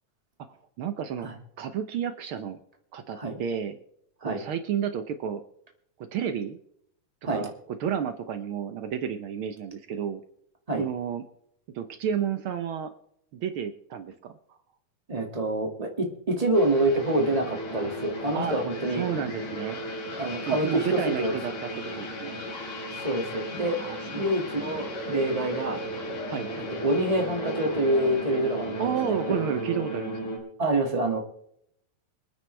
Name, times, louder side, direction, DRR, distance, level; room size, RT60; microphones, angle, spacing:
voice 1, 0.8-1.3 1.6-2.6 2.9-3.8 4.2-5.4 6.0-6.6 7.3-10.2 10.8-11.2 11.7-12.9 13.3-14.4 18.3-18.6 18.9-19.8 20.5-22.3 23.8-24.4 26.3-26.5 28.8-30.2, right 8 dB, 90° right, 8 dB, 1.1 m, -31 dB
voice 2, 15.1-19.1 20.2-21.3 23.0-23.8 24.1-25.8 26.6-29.4 30.6-31.2, right 1 dB, 15° right, 2 dB, 1.7 m, -26 dB
sound 1, 16.5-30.4, equal, 80° left, 5.2 m, -35 dB
26.5 x 9.4 x 3.4 m, 0.71 s
omnidirectional pair, 3.6 m